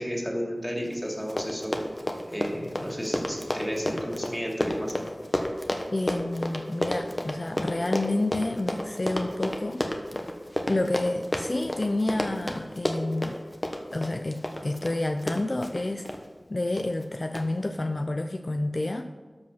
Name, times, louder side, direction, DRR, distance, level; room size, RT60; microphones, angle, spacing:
voice 1, 0.0-1.8 2.3-4.9, equal, ahead, -1 dB, 2.7 m, -32 dB
Run, 0.9-1.0 1.2-16.2 16.8-17.0 17.3-17.4, left 1 dB, 30° left, 1.1 m, -31 dB
voice 2, 5.9-9.8 10.7-13.4 13.9-16.1 16.5-19.1, left 2 dB, 50° left, 6 dB, 0.5 m, -29 dB
13.0 x 5.2 x 5.7 m, 1.3 s
wide cardioid pair, 45°, 0 cm